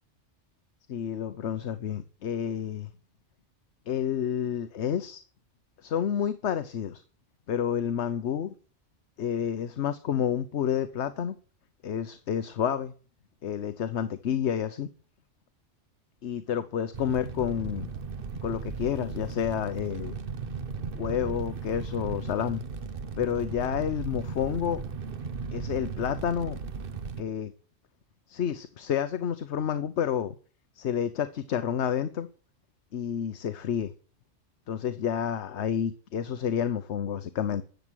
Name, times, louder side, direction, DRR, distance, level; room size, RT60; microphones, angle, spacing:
voice 1, 0.9-2.9 3.9-5.2 5.8-7.0 7.5-8.5 9.2-11.3 11.8-12.9 13.4-14.9 16.2-17.9 18.4-20.2 20.9-22.6 23.2-24.8 25.5-26.6 27.2-27.5 28.3-30.3 30.8-32.3 32.9-33.9 34.7-37.6, left 8 dB, 70° left, 11 dB, 1.1 m, -29 dB
Fire, 16.9-27.2, right 5 dB, 50° right, 1.2 m, -36 dB
12.0 x 7.5 x 9.8 m, 0.41 s
omnidirectional pair, 1.2 m